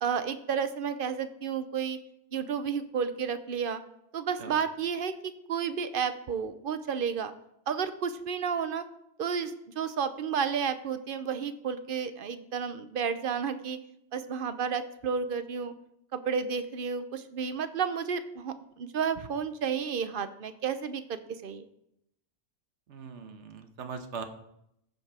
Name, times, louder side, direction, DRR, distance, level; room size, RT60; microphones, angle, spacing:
voice 1, 0.0-2.0 2.3-3.8 4.1-5.1 5.5-7.3 7.7-8.8 9.2-13.8 14.1-15.7 16.1-21.7, right 6 dB, 55° right, 11 dB, 0.8 m, -31 dB
voice 2, 22.9-24.2, right 5 dB, 75° right, 8 dB, 1.3 m, -40 dB
14.5 x 5.3 x 4.8 m, 0.79 s
omnidirectional pair, 1.2 m